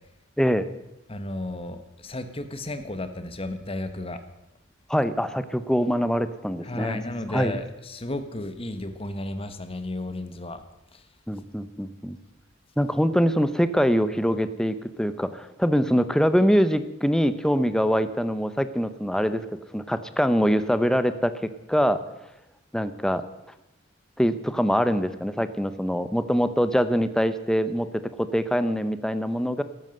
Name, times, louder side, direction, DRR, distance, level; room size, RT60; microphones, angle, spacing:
voice 1, 0.4-0.7 4.9-7.0 7.3-7.5 11.3-12.2 12.8-19.4 19.7-21.3 21.7-22.0 22.7-23.2 24.2-27.9 28.2-29.6, equal, 5° left, 12 dB, 0.8 m, -23 dB
voice 2, 1.1-4.2 6.6-10.6, left 1 dB, 30° left, 9 dB, 1.3 m, -33 dB
13.0 x 13.0 x 7.8 m, 0.92 s
head